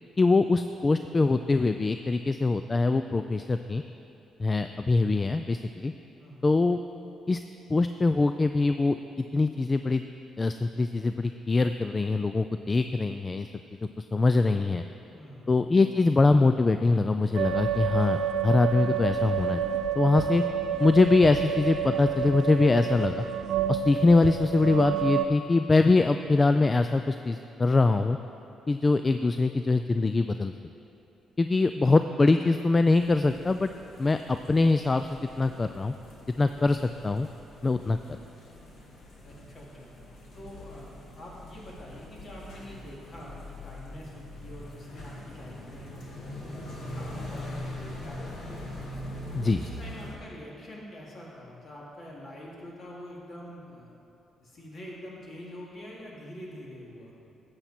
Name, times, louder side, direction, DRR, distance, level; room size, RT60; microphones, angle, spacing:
voice 1, 0.2-3.8 4.4-5.9 6.4-6.8 7.3-7.4 7.7-9.0 9.3-10.0 10.4-13.5 14.0-14.8 15.5-19.6 20.0-20.4 20.8-23.2 23.7-28.2 28.7-30.5 31.4-33.7 34.0-35.9 36.4-37.3 37.6-38.0 49.3-49.6, left 3 dB, 25° left, 8 dB, 0.3 m, -23 dB
voice 2, 6.2-6.5 15.1-15.5 39.2-39.9 40.3-45.9 46.5-48.2 48.4-48.7 49.3-53.9 54.4-57.1, equal, 50° left, -4 dB, 2.5 m, -45 dB
sound 1, 17.3-25.3, right 8 dB, 75° right, 0.4 m, -29 dB
sound 2, 32.9-50.2, left 1 dB, 70° left, 2.1 m, -42 dB
12.0 x 8.0 x 4.3 m, 2.8 s
cardioid pair, 90°, 0 cm